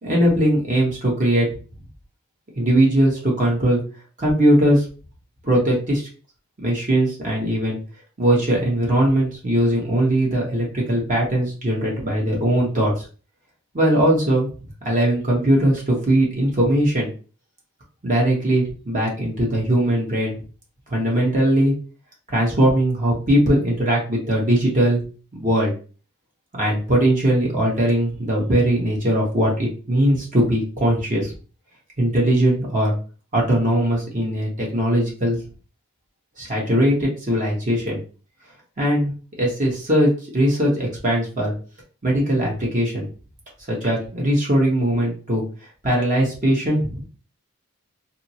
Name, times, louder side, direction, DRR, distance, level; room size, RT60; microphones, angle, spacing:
voice 1, 0.0-1.5 2.6-3.8 4.2-4.8 5.4-6.0 6.6-7.8 8.2-12.9 13.7-14.5 14.8-17.1 18.0-20.4 20.9-21.7 22.3-25.0 25.3-25.7 26.5-31.3 32.0-32.9 33.3-35.4 36.4-38.0 38.8-39.1 39.4-41.5 42.0-43.1 43.7-45.4 45.8-47.0, right 1 dB, 35° right, -3 dB, 1.1 m, -20 dB
4.1 x 2.0 x 2.8 m, 0.37 s
head